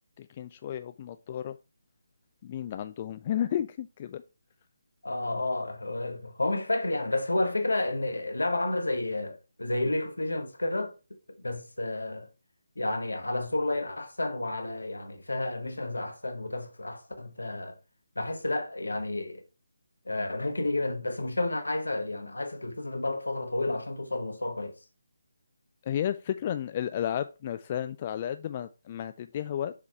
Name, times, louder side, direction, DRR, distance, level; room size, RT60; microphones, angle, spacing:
voice 1, 0.2-1.6 2.4-4.2 25.9-29.7, left 10 dB, 30° left, 0.3 m, -32 dB
voice 2, 5.0-10.9 11.3-12.3 12.7-17.8 18.1-19.4 20.0-24.7, left 2 dB, 75° left, 1.5 m, -31 dB
7.0 x 4.1 x 4.5 m
figure-of-eight pair, 150°, 0 cm